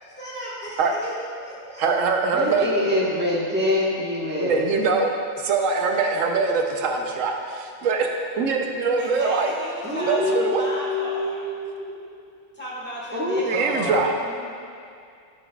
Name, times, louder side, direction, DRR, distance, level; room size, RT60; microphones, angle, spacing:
voice 1, 0.2-1.9 9.0-11.5 12.5-13.8 14.2-14.5, equal, 10° left, -7 dB, 1.5 m, -35 dB
voice 2, 1.8-2.7 4.4-8.1 8.4-9.5 10.1-10.6 13.4-14.1, right 4 dB, 80° right, 3 dB, 1.0 m, -23 dB
voice 3, 2.3-4.7 9.8-12.0 13.1-14.0, left 1 dB, 10° right, -5 dB, 1.0 m, -25 dB
8.1 x 8.0 x 2.3 m, 2.4 s
omnidirectional pair, 1.3 m